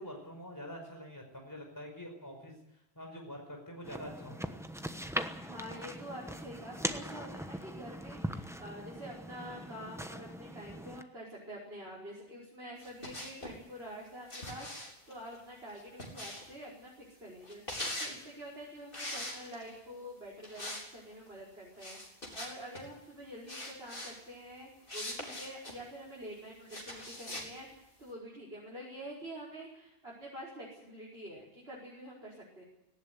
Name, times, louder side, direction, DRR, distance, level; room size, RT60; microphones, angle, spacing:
voice 1, 0.0-2.5 2.9-4.6, equal, 20° left, 2 dB, 5.1 m, -46 dB
sound 1, 3.8-11.0, equal, 5° right, 1.0 m, -40 dB
voice 2, 5.5-22.0 22.3-27.7 28.0-32.6, equal, 75° right, -4 dB, 5.7 m, -47 dB
sound 2, 12.8-13.6 14.3-16.6 17.4-18.2 18.9-19.8 20.4-20.9 21.1-21.3 21.8-22.8 23.5-24.1 24.9-25.8 26.7-27.5, left 1 dB, 60° left, 4.6 m, -41 dB
18.5 x 17.0 x 9.3 m, 0.90 s
omnidirectional pair, 1.0 m